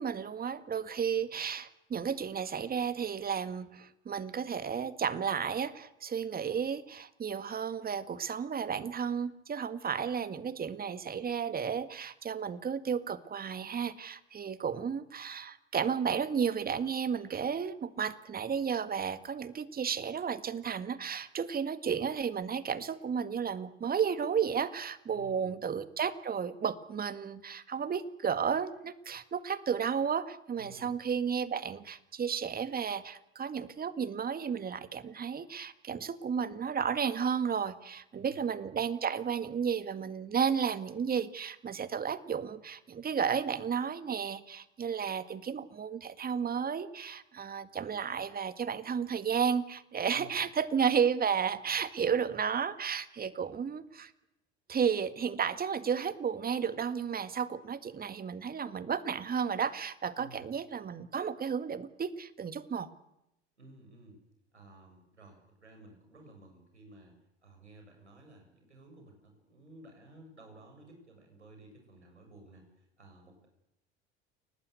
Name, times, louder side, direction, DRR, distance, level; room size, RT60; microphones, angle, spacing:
voice 1, 0.0-54.1 54.7-62.9, right 7 dB, 25° right, 12 dB, 1.9 m, -33 dB
voice 2, 25.1-25.6 30.6-31.0 38.1-38.4 50.1-50.4 60.2-60.5 63.6-64.2 64.5-73.5, right 1 dB, 90° right, 3 dB, 7.5 m, -55 dB
29.5 x 19.0 x 8.3 m, 0.84 s
figure-of-eight pair, 75°, 33 cm